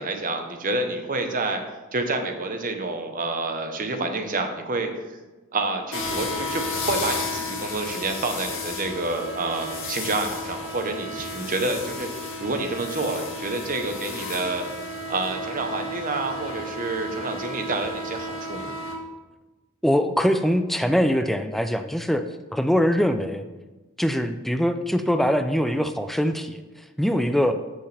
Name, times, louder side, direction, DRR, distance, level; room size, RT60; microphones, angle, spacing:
voice 1, 0.0-1.6 1.9-5.0 5.5-12.1 12.4-18.7, right 2 dB, 40° right, 5 dB, 1.0 m, -28 dB
sound 1, 5.9-18.9, left 2 dB, 60° left, 2.1 m, -33 dB
voice 2, 19.8-22.2 22.5-23.4 24.0-26.6 27.0-27.5, equal, ahead, 8 dB, 0.3 m, -22 dB
13.0 x 5.6 x 3.4 m, 1.2 s
head